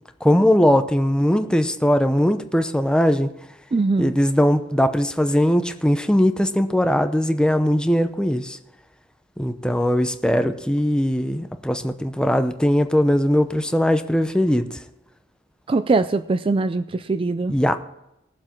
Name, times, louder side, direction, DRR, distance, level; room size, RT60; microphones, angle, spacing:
voice 1, 0.2-3.3 4.0-8.6 9.4-14.8 17.5-17.8, equal, 5° left, 0.7 m, -20 dB
voice 2, 3.7-4.1 15.7-17.5, right 3 dB, 30° right, 0.3 m, -22 dB
19.5 x 7.5 x 4.4 m
head